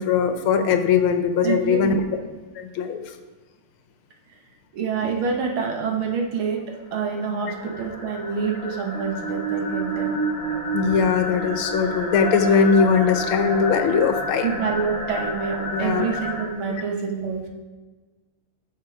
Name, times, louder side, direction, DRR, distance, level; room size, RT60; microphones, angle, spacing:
voice 1, 0.0-2.0 2.6-3.0 10.7-14.5 15.7-16.1, left 6 dB, 80° left, 8 dB, 1.6 m, -20 dB
voice 2, 1.4-2.1 4.3-4.4 4.7-6.6 6.9-10.2 14.4-17.4, right 5 dB, 75° right, 1 dB, 2.0 m, -27 dB
sound 1, 6.8-16.4, right 1 dB, 30° right, 3.2 m, -30 dB
10.5 x 6.6 x 4.9 m, 1.3 s
omnidirectional pair, 2.3 m